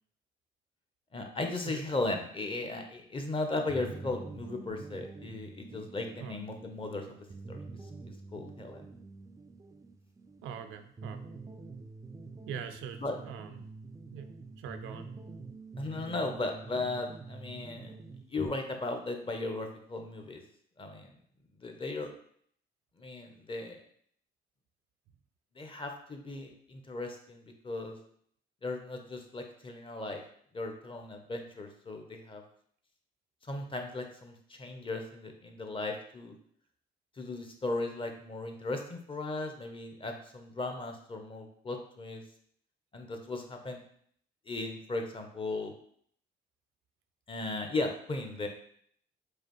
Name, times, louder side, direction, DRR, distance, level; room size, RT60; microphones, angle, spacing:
voice 1, 1.1-7.6 8.0-8.9 13.0-13.2 15.8-18.0 18.3-20.4 20.8-21.1 21.6-22.1 23.0-23.8 25.6-28.0 28.6-30.2 30.5-32.4 33.5-36.3 37.2-42.2 42.9-43.8 44.5-45.7 47.3-48.5, left 2 dB, 25° left, 4 dB, 0.7 m, -36 dB
sound 1, 3.7-18.5, right 3 dB, 15° right, 0.3 m, -46 dB
voice 2, 10.4-11.2 12.5-13.7 14.1-14.3 14.6-15.1, right 8 dB, 90° right, 8 dB, 0.4 m, -42 dB
4.8 x 2.4 x 3.0 m, 0.62 s
cardioid pair, 90°, 20 cm